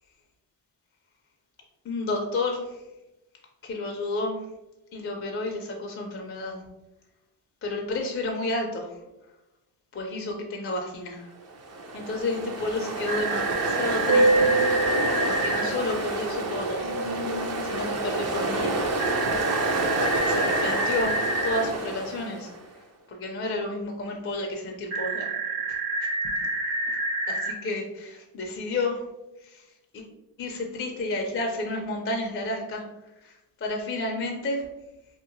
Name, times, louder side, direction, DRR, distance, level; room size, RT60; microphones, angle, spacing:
voice 1, 1.9-2.6 3.6-4.4 4.9-6.6 7.6-8.9 9.9-11.3 11.9-14.5 15.3-16.9 17.3-17.4 17.7-18.8 20.3-21.2 21.4-22.5 23.1-25.3 27.3-29.0 29.9-30.0 30.4-32.8 33.2-33.3 33.6-34.6, left 2 dB, 30° left, 1 dB, 0.4 m, -31 dB
Ocean, 11.5-22.6, right 2 dB, 35° right, 0.4 m, -27 dB
sound 1, 13.1-15.7 19.0-21.6 24.9-27.5, right 2 dB, 75° right, 1.1 m, -28 dB
2.8 x 2.4 x 2.5 m, 0.98 s
cardioid pair, 85°, 45 cm